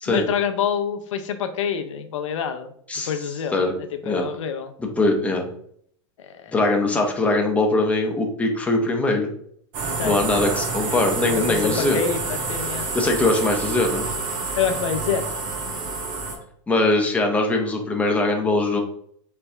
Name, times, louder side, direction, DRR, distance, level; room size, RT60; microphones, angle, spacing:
voice 1, 0.1-2.7 3.0-3.6 4.1-4.7 6.2-6.6 10.0-10.2 11.5-12.9 14.6-15.3, left 7 dB, 85° left, 8 dB, 0.7 m, -26 dB
voice 2, 4.8-5.4 6.5-9.3 10.0-12.0 12.9-14.1 16.7-18.8, left 2 dB, 10° left, 1 dB, 0.9 m, -21 dB
sound 1, 9.7-16.4, right 3 dB, 50° right, 1.3 m, -28 dB
4.1 x 3.4 x 3.4 m, 0.65 s
supercardioid pair, 130°, 16 cm